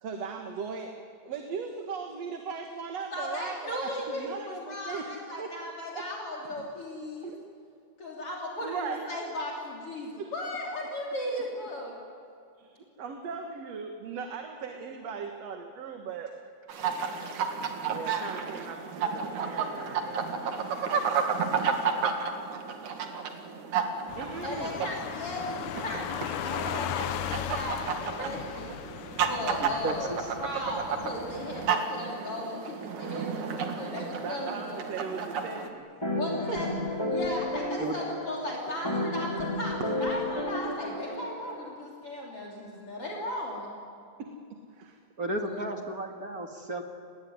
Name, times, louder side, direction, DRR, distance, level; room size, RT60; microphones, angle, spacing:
voice 1, 0.0-5.1 5.4-5.5 5.9-6.1 6.4-6.7 7.2-7.4 8.6-9.1 10.2-10.3 12.6-16.3 16.8-17.1 17.9-20.5 24.2-24.9 25.9-26.3 34.2-35.9 36.5-36.6 39.0-39.2 44.2-45.0, right 5 dB, 60° right, 4 dB, 2.7 m, -39 dB
voice 2, 3.1-7.3 8.0-12.0 24.4-26.2 26.4-28.7 29.3-34.8 36.1-36.8 37.1-43.7 45.4-45.6, left 1 dB, 50° left, -2 dB, 4.2 m, -36 dB
sound 1, 16.7-35.7, right 6 dB, 80° right, 3.4 m, -32 dB
sound 2, 24.1-31.8, left 12 dB, 85° left, 2.3 m, -37 dB
voice 3, 29.6-30.3 37.8-38.0 45.2-46.8, right 1 dB, 35° right, 4 dB, 1.9 m, -34 dB
sound 3, 36.0-41.7, left 1 dB, 10° left, 2.1 m, -32 dB
29.5 x 19.5 x 9.7 m, 2.5 s
omnidirectional pair, 3.4 m